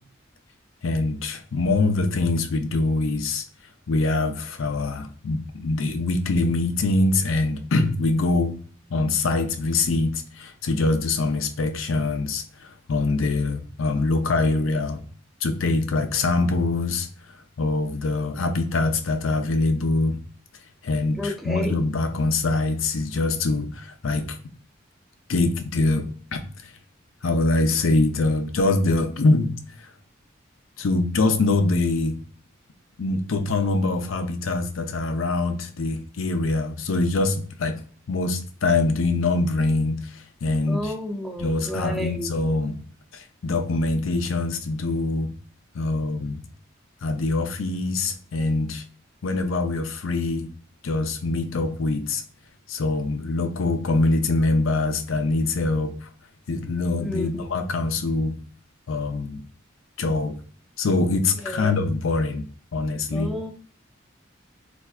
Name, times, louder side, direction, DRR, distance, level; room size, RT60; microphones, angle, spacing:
voice 1, 0.8-3.4 3.9-8.6 8.9-15.0 15.4-17.1 17.6-20.2 20.8-24.4 25.3-26.4 27.2-29.5 29.8-29.9 30.8-32.2 33.0-37.8 38.1-40.9 41.4-42.8 43.1-45.3 45.7-46.4 47.0-48.8 49.2-50.5 50.8-52.2 52.7-56.1 56.5-58.4 58.9-59.4 60.0-60.4 60.8-62.5 62.7-63.3, left 2 dB, 85° left, 7 dB, 0.6 m, -24 dB
voice 2, 21.2-21.8 40.7-42.3 57.0-57.5 61.4-61.8 63.1-63.5, left 1 dB, ahead, 2 dB, 0.5 m, -31 dB
4.3 x 2.5 x 2.3 m, 0.43 s
head